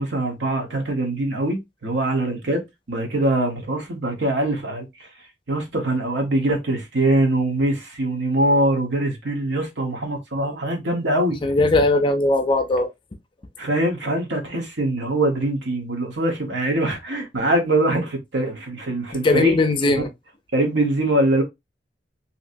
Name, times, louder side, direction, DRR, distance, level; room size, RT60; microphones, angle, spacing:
voice 1, 0.0-2.6 2.9-4.9 5.5-11.4 13.6-20.0 20.5-21.4, right 1 dB, 70° right, 1.0 m, -23 dB
voice 2, 11.4-12.9 19.2-20.1, left 2 dB, 30° left, 0.4 m, -19 dB
2.9 x 2.7 x 2.5 m
head